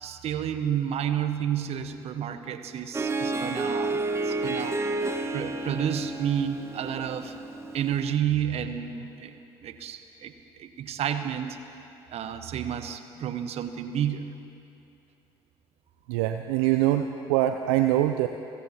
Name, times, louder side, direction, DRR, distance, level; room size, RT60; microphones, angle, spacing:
voice 1, 0.0-4.0 4.2-4.8 5.3-7.3 7.7-9.4 9.6-10.3 10.6-11.6 12.1-14.4, right 9 dB, 50° right, 9 dB, 1.1 m, -30 dB
Harp, 2.9-8.2, right 2 dB, 20° right, 1.1 m, -31 dB
voice 2, 16.1-18.3, right 13 dB, 70° right, 8 dB, 0.5 m, -24 dB
29.5 x 15.0 x 2.9 m, 2.8 s
hypercardioid pair, 60°, 13 cm